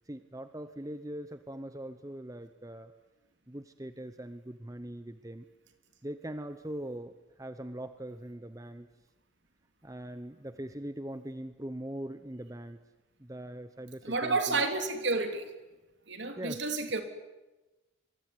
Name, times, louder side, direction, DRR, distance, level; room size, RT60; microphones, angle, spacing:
voice 1, 0.1-2.9 3.5-5.5 6.0-8.9 9.8-12.8 13.2-14.6 16.4-16.6, right 1 dB, 15° right, 10 dB, 0.9 m, -41 dB
voice 2, 14.0-15.5 16.1-17.0, right 3 dB, 60° right, 6 dB, 3.3 m, -30 dB
26.0 x 23.0 x 9.7 m, 1.1 s
head